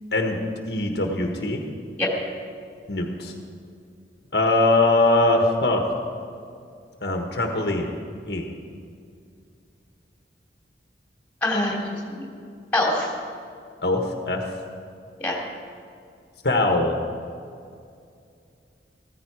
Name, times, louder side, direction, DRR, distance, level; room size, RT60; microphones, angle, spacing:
voice 1, 0.7-1.6 2.9-3.3 4.3-5.9 7.0-7.9 8.3-8.5 13.8-14.4 16.4-17.0, left 2 dB, 65° left, 2 dB, 1.3 m, -22 dB
voice 2, 11.4-12.3 12.7-13.1 15.2-15.4, left 1 dB, 10° left, -2 dB, 2.9 m, -24 dB
15.0 x 14.5 x 4.9 m, 2.4 s
head